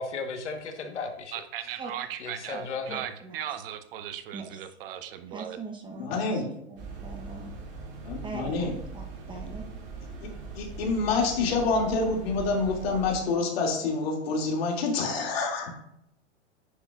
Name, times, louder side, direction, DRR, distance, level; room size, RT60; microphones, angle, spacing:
voice 1, 0.0-1.3 2.2-3.0, left 4 dB, 80° left, 5 dB, 1.4 m, -35 dB
voice 2, 1.3-5.6, right 10 dB, 55° right, 9 dB, 0.9 m, -37 dB
voice 3, 2.9-3.4 4.3-4.5 5.3-7.5 8.2-9.7, right 4 dB, 15° right, 2 dB, 0.9 m, -42 dB
voice 4, 6.0-6.5 8.0-8.7 10.2-10.3 10.5-15.7, left 3 dB, 60° left, 0 dB, 2.6 m, -27 dB
sound 1, 6.8-13.2, right 4 dB, 30° right, 2.6 m, -41 dB
9.7 x 6.3 x 2.5 m, 0.76 s
hypercardioid pair, 120°, 34 cm